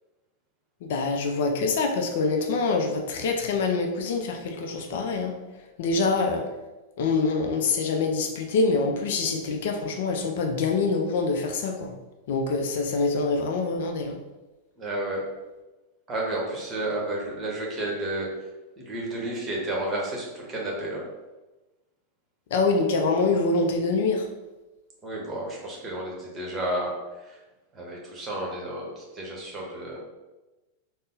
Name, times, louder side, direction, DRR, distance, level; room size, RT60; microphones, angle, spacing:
voice 1, 0.8-5.3 5.8-6.4 7.0-11.9 12.3-14.2 22.5-24.3, left 3 dB, 55° left, 3 dB, 0.4 m, -25 dB
voice 2, 14.8-15.2 16.1-18.3 18.8-21.0 25.0-26.9 27.2-27.4 27.7-30.0, right 1 dB, 20° right, -2 dB, 1.0 m, -31 dB
3.6 x 2.0 x 3.7 m, 1.1 s
figure-of-eight pair, 90°, 0 cm